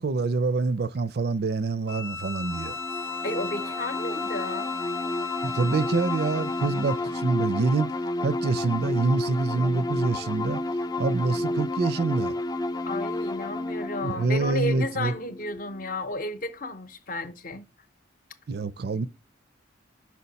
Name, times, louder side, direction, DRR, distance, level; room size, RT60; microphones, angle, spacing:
voice 1, 0.0-2.7 5.4-7.9 8.2-10.6 11.0-12.3 14.0-15.1 18.5-19.1, right 3 dB, 55° right, 0.4 m, -26 dB
Bowed string instrument, 1.9-7.1, left 4 dB, 80° left, 0.8 m, -36 dB
sound 1, 2.4-15.9, left 2 dB, 20° left, 0.4 m, -31 dB
voice 2, 3.2-4.7 12.8-17.6 19.0-19.1, left 1 dB, 45° left, 0.7 m, -33 dB
5.7 x 4.7 x 4.0 m
head